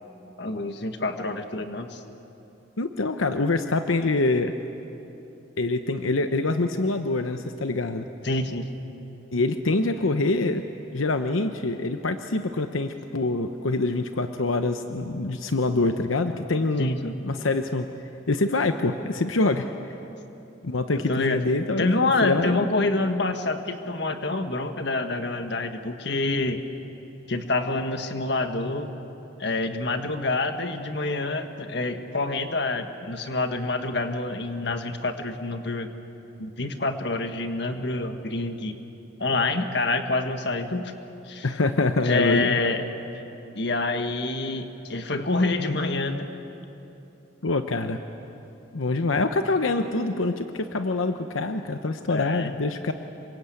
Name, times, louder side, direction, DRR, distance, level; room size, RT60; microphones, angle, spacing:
voice 1, 0.4-2.0 8.2-8.7 16.8-17.1 20.9-21.4 21.8-26.6 27.3-28.9 29.4-35.9 36.4-38.7 39.2-40.9 41.3-41.5 42.0-42.8 43.5-46.3 52.1-52.5, left 2 dB, 55° left, 7 dB, 1.6 m, -27 dB
voice 2, 2.8-4.5 5.6-8.1 9.3-10.6 10.9-16.9 17.2-17.9 18.3-19.7 20.6-22.7 41.4-42.6 47.4-48.0 48.7-52.9, left 2 dB, 85° left, 7 dB, 0.9 m, -25 dB
27.0 x 24.0 x 8.4 m, 3.0 s
head